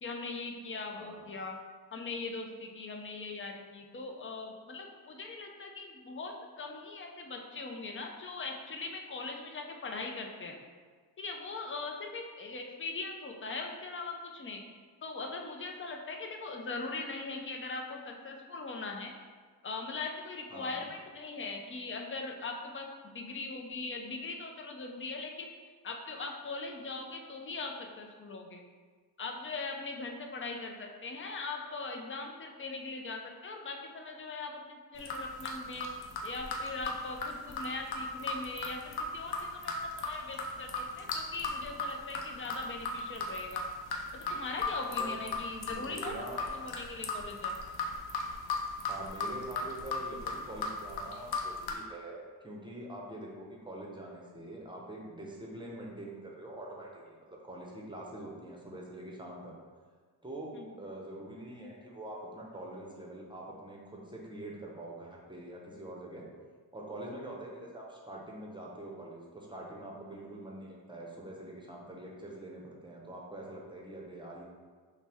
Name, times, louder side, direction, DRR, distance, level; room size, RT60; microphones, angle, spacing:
voice 1, 0.0-1.6 1.9-10.6 11.2-14.6 15.0-19.1 19.6-22.9 23.1-25.5 25.8-28.6 29.2-35.9 36.2-43.7 44.1-46.1 46.5-47.6 60.6-60.7, left 3 dB, 30° left, 2 dB, 0.5 m, -40 dB
voice 2, 0.9-1.3 20.5-20.8 45.0-45.2 45.6-46.4 48.9-59.5 60.2-66.3 66.7-74.4, right 1 dB, 10° right, -2 dB, 0.7 m, -44 dB
sound 1, 35.0-51.7, left 3 dB, 70° left, 0.6 m, -37 dB
5.6 x 2.2 x 3.4 m, 1.5 s
wide cardioid pair, 115°, 39 cm